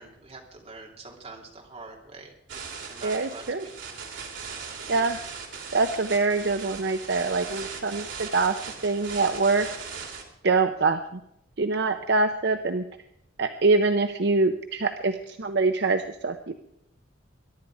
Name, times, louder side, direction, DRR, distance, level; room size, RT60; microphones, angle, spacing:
voice 1, 0.0-4.0 4.9-5.3 8.7-8.8, right 3 dB, 30° right, 0 dB, 2.8 m, -46 dB
sound 1, 2.5-10.2, right 5 dB, 70° right, 3.0 m, -39 dB
voice 2, 3.0-3.6 4.9-5.2 5.7-8.5 8.8-9.7 10.4-11.2 11.6-12.8 13.4-16.5, right 3 dB, 55° right, 7 dB, 0.7 m, -24 dB
22.0 x 11.0 x 4.8 m, 0.79 s
head